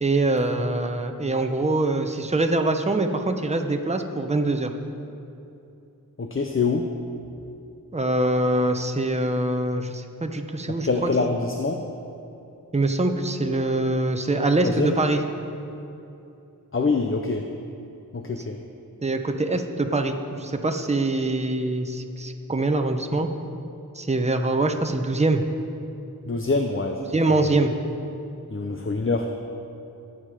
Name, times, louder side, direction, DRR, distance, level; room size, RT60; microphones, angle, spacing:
voice 1, 0.0-4.7 7.9-10.9 12.7-15.2 19.0-23.3 23.9-25.4 27.1-27.7, right 2 dB, 20° right, 5 dB, 0.9 m, -24 dB
voice 2, 6.2-6.9 10.8-11.8 14.6-14.9 16.7-17.5 18.1-18.6 26.2-27.5 28.5-29.3, left 3 dB, 35° left, 4 dB, 0.7 m, -25 dB
19.0 x 7.5 x 4.9 m, 2.8 s
wide cardioid pair, 80°, 36 cm